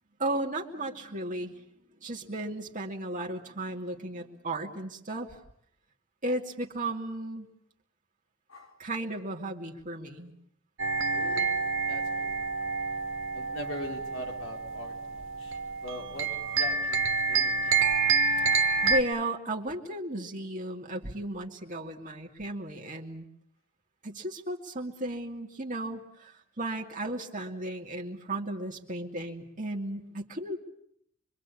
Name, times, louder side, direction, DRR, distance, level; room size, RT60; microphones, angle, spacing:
voice 1, 0.2-1.6 2.0-5.4 6.2-7.5 8.8-10.3 18.4-23.3 24.0-30.6, right 1 dB, 40° right, 0 dB, 2.4 m, -35 dB
voice 2, 8.5-8.8 11.1-11.5 11.9-12.4 13.3-16.3 16.6-17.8, left 1 dB, 90° left, 1 dB, 4.3 m, -42 dB
sound 1, 10.8-19.0, right 4 dB, 75° right, 2.3 m, -28 dB
25.5 x 24.5 x 8.5 m, 0.70 s
head